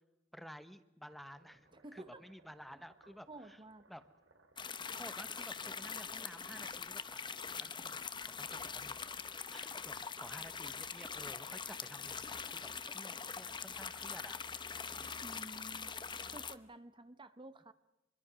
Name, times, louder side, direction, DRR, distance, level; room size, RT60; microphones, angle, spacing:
voice 1, 0.3-3.6 3.9-4.0 5.0-7.3 7.6-14.4, equal, ahead, 11 dB, 1.0 m, -53 dB
sound 1, 1.1-6.7, right 2 dB, 80° right, 3.6 m, -67 dB
voice 2, 1.7-2.2 3.3-3.9 15.2-15.9 16.3-17.7, right 2 dB, 25° right, 12 dB, 0.9 m, -52 dB
sound 2, 4.6-16.6, left 6 dB, 25° left, 0.9 m, -43 dB
26.5 x 22.5 x 6.2 m, 0.97 s
head